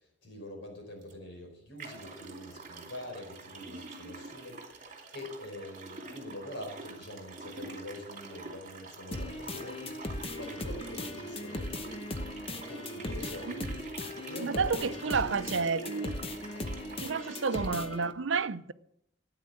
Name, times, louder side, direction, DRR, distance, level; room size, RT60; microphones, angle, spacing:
voice 1, 0.2-4.6 5.1-12.1 12.5-13.7 14.1-15.5 17.5-17.7, left 1 dB, 65° left, 4.8 m, -45 dB
sound 1, 1.0-1.1 1.8-17.7, right 3 dB, 40° right, 2.6 m, -46 dB
sound 2, 9.1-18.1, left 1 dB, 30° left, 1.1 m, -38 dB
voice 2, 14.4-16.1 17.0-18.7, right 5 dB, 75° right, 0.6 m, -30 dB
13.5 x 9.8 x 7.7 m
head